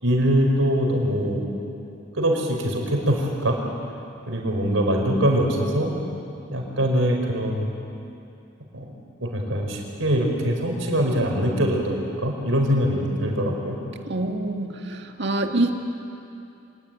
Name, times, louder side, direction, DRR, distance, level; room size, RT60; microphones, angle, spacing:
voice 1, 0.0-1.4 2.1-3.5 4.3-5.9 6.5-7.7 8.7-8.9 9.2-13.8, equal, 80° right, 1 dB, 5.0 m, -23 dB
voice 2, 14.1-15.7, right 2 dB, 60° right, 4 dB, 2.0 m, -25 dB
26.0 x 19.5 x 9.2 m, 2.7 s
head